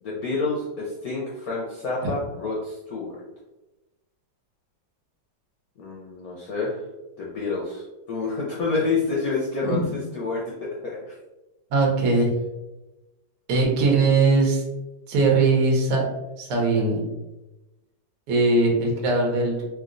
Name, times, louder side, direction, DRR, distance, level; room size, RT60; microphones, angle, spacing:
voice 1, 0.0-3.2 5.8-6.8 7.2-9.8 10.1-11.1, left 3 dB, 65° left, -5 dB, 0.9 m, -28 dB
voice 2, 11.7-12.3 13.5-14.6 15.1-16.1 16.4-17.0 18.3-19.6, right 3 dB, 60° right, -1 dB, 1.2 m, -20 dB
3.2 x 2.8 x 2.5 m, 1.0 s
omnidirectional pair, 2.1 m